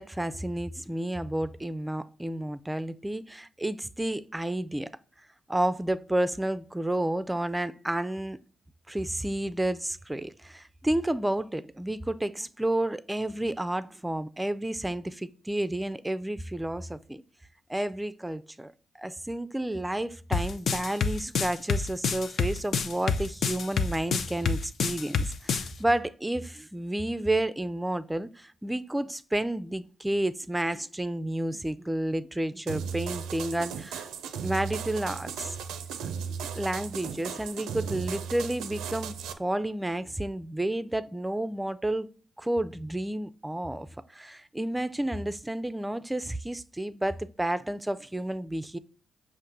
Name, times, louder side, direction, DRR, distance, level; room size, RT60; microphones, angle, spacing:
voice 1, 0.0-4.9 5.5-8.4 8.9-17.2 17.7-18.7 19.0-34.1 34.4-35.6 36.0-36.2 36.5-42.1 42.4-43.9 44.1-48.8, right 1 dB, 10° right, 0.4 m, -31 dB
sound 1, 20.3-25.7, left 5 dB, 60° left, 0.4 m, -27 dB
sound 2, 32.7-39.3, right 7 dB, 80° right, 0.4 m, -36 dB
5.8 x 2.5 x 3.6 m
supercardioid pair, 50°, 0 cm